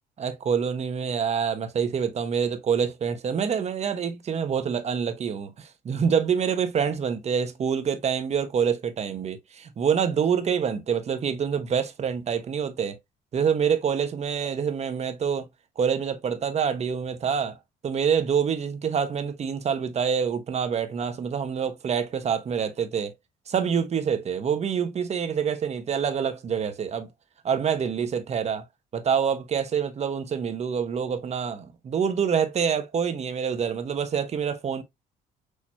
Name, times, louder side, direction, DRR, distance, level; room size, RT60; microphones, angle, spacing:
voice 1, 0.2-13.0 13.3-15.5 15.8-17.6 17.8-23.1 23.5-27.1 27.4-28.6 28.9-34.8, right 7 dB, 40° right, 1.0 m, -26 dB
6.5 x 2.9 x 2.8 m
cardioid pair, 110°, 17 cm